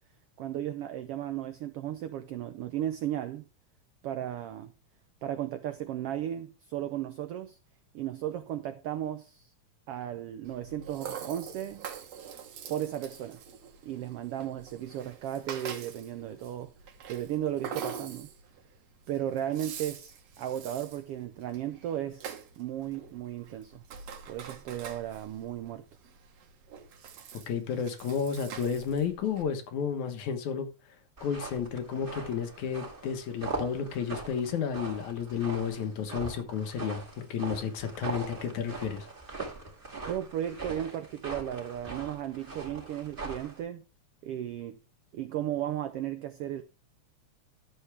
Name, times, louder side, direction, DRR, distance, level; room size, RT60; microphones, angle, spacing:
voice 1, 0.4-3.4 4.0-4.7 5.2-7.6 7.9-9.5 9.9-11.9 12.7-13.4 13.8-16.7 17.1-18.3 19.1-22.3 22.6-23.8 24.3-25.8 40.0-43.8 44.2-44.8 45.1-46.6, right 11 dB, 90° right, 1.3 m, -35 dB
Rattle (instrument), 10.5-29.4, right 7 dB, 65° right, 2.2 m, -45 dB
voice 2, 27.5-30.7 31.2-39.1, left 7 dB, 75° left, 2.6 m, -32 dB
sound 1, 31.2-43.6, right 3 dB, 20° right, 1.9 m, -41 dB
11.5 x 7.1 x 3.4 m
omnidirectional pair, 3.5 m